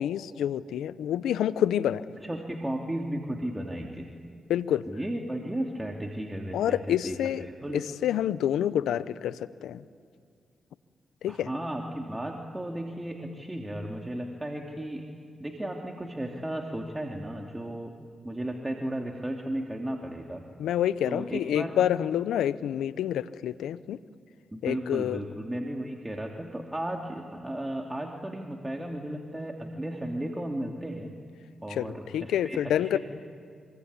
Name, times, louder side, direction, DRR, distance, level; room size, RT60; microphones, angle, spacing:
voice 1, 0.0-2.0 4.5-4.8 6.5-7.5 7.7-9.8 11.2-11.5 20.6-24.0 24.6-25.2 31.7-33.0, left 10 dB, 85° left, 16 dB, 0.7 m, -28 dB
voice 2, 2.2-4.1 4.9-7.8 11.3-15.0 15.4-17.9 18.2-20.4 21.0-21.7 24.5-31.2 31.6-33.0, right 1 dB, 15° right, 1 dB, 2.8 m, -35 dB
25.5 x 23.5 x 9.7 m, 2.2 s
supercardioid pair, 55°, 0 cm